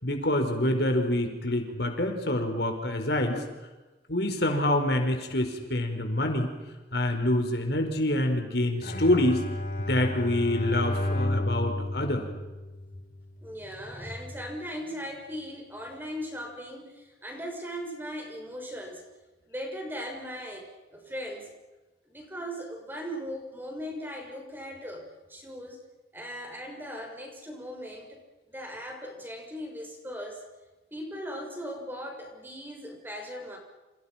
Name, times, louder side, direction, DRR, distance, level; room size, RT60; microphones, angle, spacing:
voice 1, 0.0-3.4 4.1-6.5 6.9-9.5 9.8-12.2, left 1 dB, 70° left, 4 dB, 4.9 m, -26 dB
Bowed string instrument, 8.8-13.2, left 1 dB, 50° left, 3.4 m, -31 dB
voice 2, 13.4-19.0 19.5-21.5 22.1-25.8 26.1-28.2 28.5-30.4 30.9-33.6, equal, 10° right, 1 dB, 6.4 m, -38 dB
30.0 x 28.5 x 6.0 m, 1.1 s
head